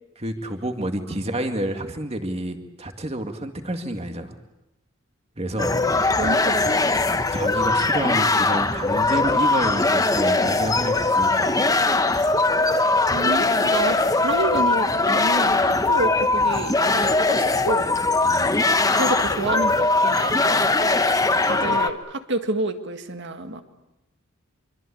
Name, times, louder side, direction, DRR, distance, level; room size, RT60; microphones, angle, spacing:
voice 1, 0.2-4.3 5.4-5.7 7.3-11.6 18.2-18.6, right 1 dB, 30° right, 6 dB, 2.1 m, -29 dB
sound 1, 5.6-21.9, left 3 dB, 15° left, 1.0 m, -20 dB
voice 2, 6.2-7.2 13.1-17.9 19.0-20.9 21.4-23.6, right 2 dB, 55° right, 7 dB, 1.9 m, -29 dB
25.5 x 24.0 x 8.7 m, 0.96 s
head